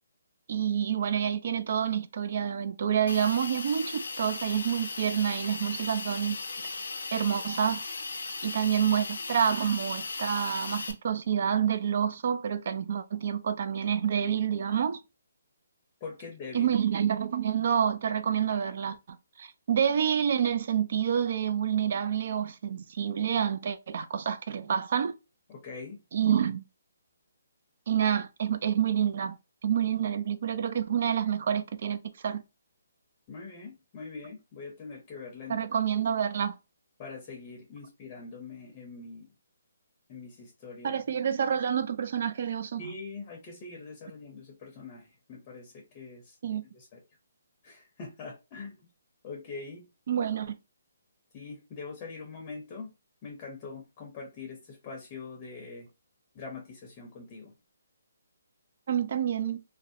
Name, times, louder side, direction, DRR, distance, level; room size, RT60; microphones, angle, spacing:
voice 1, 0.5-6.4 7.1-7.8 8.4-15.0 16.5-25.1 26.1-26.6 27.9-29.4 29.6-32.0 32.2-32.4 35.5-36.6 40.8-42.9 46.4-46.6 50.1-50.5 58.9-59.6, right 8 dB, 55° right, 0.3 m, -28 dB
Hiss, 3.1-10.9, left 3 dB, 80° left, 0.5 m, -37 dB
voice 2, 16.0-16.7 25.5-26.0 33.3-35.6 37.0-39.3 40.1-41.0 42.8-46.4 46.7-47.0 47.6-48.9 49.2-49.9 51.3-52.9 53.2-55.9 56.3-57.5, left 4 dB, 25° left, 0.6 m, -43 dB
2.5 x 2.1 x 2.6 m
hypercardioid pair, 155°, 0 cm